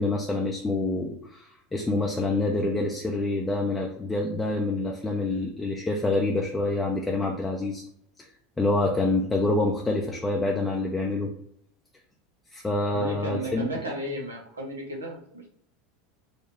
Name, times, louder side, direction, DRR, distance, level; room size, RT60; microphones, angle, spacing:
voice 1, 0.0-7.8 8.6-11.3 12.5-13.7, left 2 dB, 10° left, -1 dB, 0.6 m, -27 dB
voice 2, 12.9-15.5, equal, 80° right, -1 dB, 1.1 m, -34 dB
4.2 x 2.3 x 3.3 m, 0.68 s
figure-of-eight pair, 80°, 0 cm